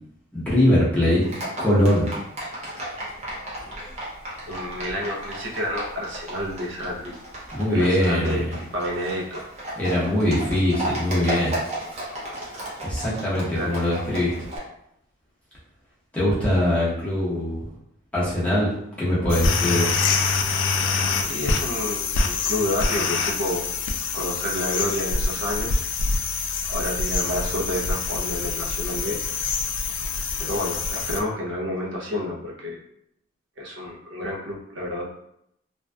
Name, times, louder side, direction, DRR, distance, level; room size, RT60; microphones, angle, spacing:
voice 1, 0.3-1.2 1.6-2.1 7.5-8.5 9.8-11.5 12.8-14.3 16.1-17.7 18.1-18.7 19.0-19.9, left 1 dB, 5° left, -9 dB, 0.8 m, -22 dB
Livestock farm animals working animals, 1.2-14.6, right 1 dB, 35° right, 0.6 m, -34 dB
voice 2, 4.5-7.1 7.7-9.5 13.5-14.0 21.3-23.7 24.1-25.8 26.6-29.2 30.4-32.8 33.6-35.1, left 1 dB, 70° right, -2 dB, 0.7 m, -29 dB
sound 1, 19.3-31.2, left 4 dB, 75° left, 0.3 m, -25 dB
2.5 x 2.2 x 2.2 m, 0.76 s
head